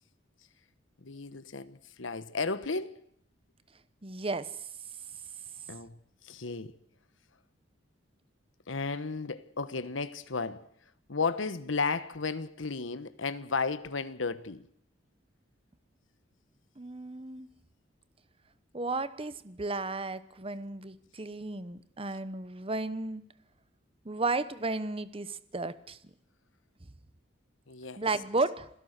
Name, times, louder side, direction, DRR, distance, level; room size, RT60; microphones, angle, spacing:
voice 1, 1.0-3.0 5.7-6.0 6.2-6.7 8.7-10.7 11.1-14.7 27.7-28.0, left 4 dB, 85° left, 1.2 m, -34 dB
voice 2, 4.0-4.5 16.8-17.5 18.7-23.2 24.0-26.0 28.0-28.7, right 3 dB, 30° right, 1.0 m, -33 dB
27.5 x 17.0 x 6.6 m
head